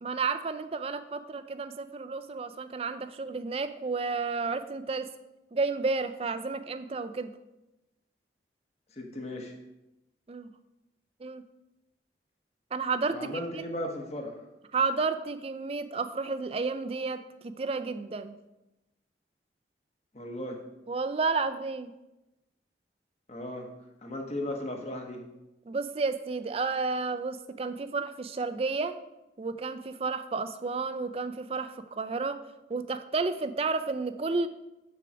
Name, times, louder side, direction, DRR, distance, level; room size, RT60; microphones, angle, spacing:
voice 1, 0.0-5.1 5.5-7.3 10.3-10.5 11.2-11.4 12.7-13.6 14.7-18.4 20.9-21.9 25.7-29.0 29.4-32.4 32.7-34.5, right 4 dB, 35° right, 11 dB, 0.4 m, -31 dB
voice 2, 9.0-9.5 13.1-14.4 20.1-20.6 23.3-23.7 24.0-25.2, left 1 dB, 40° left, 2 dB, 1.1 m, -36 dB
6.8 x 4.7 x 6.1 m, 0.95 s
head